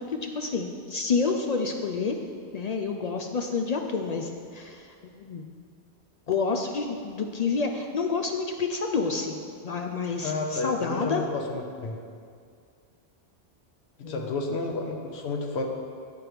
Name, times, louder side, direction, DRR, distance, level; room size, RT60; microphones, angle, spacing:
voice 1, 0.0-2.2 2.5-4.8 5.2-5.4 6.3-9.4 9.6-11.2 14.0-14.3, left 4 dB, 55° left, 4 dB, 0.4 m, -29 dB
voice 2, 10.2-12.0 14.0-15.6, left 3 dB, 75° left, 3 dB, 1.0 m, -31 dB
8.5 x 4.7 x 5.0 m, 2.2 s
omnidirectional pair, 1.1 m